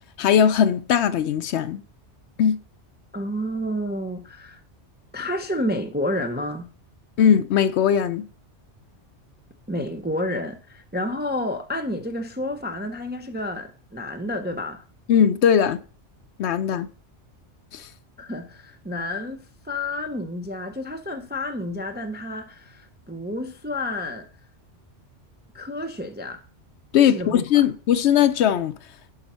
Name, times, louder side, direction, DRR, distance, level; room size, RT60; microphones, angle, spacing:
voice 1, 0.2-1.8 2.4-2.6 7.2-8.2 15.1-15.8 16.4-16.9 17.7-17.9 26.9-28.8, left 9 dB, 70° left, 0.8 m, -19 dB
voice 2, 3.1-4.6 5.1-6.7 9.7-14.8 18.2-24.3 25.5-26.4 27.1-27.3, left 1 dB, 15° right, 0.4 m, -30 dB
10.5 x 4.0 x 5.4 m
omnidirectional pair, 1.2 m